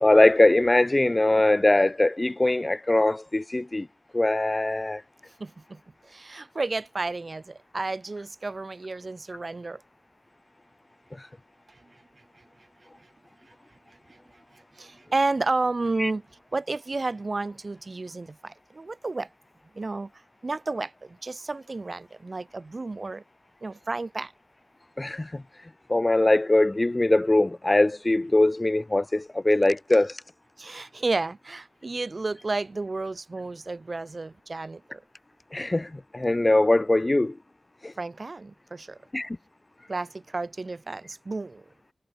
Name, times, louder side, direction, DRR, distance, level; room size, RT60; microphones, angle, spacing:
voice 1, 0.0-3.9 4.1-5.0 16.0-16.1 25.0-25.4 25.9-30.1 35.5-37.3 37.8-37.9 39.1-39.3, left 2 dB, 25° left, 0.5 m, -21 dB
voice 2, 5.4-5.8 6.1-9.8 14.8-16.2 16.5-19.3 19.8-20.1 20.4-23.2 23.6-24.3 30.6-35.0 38.0-39.0 39.9-41.6, right 3 dB, 45° right, 0.6 m, -31 dB
wide cardioid pair, 70°, 0 cm